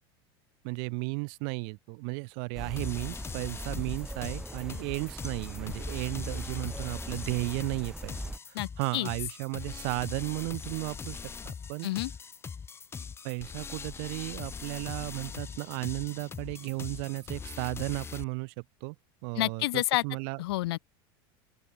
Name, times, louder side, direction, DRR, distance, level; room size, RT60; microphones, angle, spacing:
voice 1, 0.6-8.2 8.5-11.9 13.2-19.0 19.2-20.4, right 38 dB, 60° right, 1.8 m, -34 dB
sound 1, 2.5-8.4, right 1 dB, 5° right, 1.7 m, -40 dB
sound 2, 2.8-18.2, left 6 dB, 20° left, 4.2 m, -41 dB
voice 2, 8.6-9.1 11.8-12.1 19.4-20.0 20.4-20.8, left 18 dB, 80° left, 1.9 m, -29 dB
sound 3, 14.8-18.0, left 23 dB, 55° left, 5.3 m, -56 dB
open air
supercardioid pair, 140°, 13 cm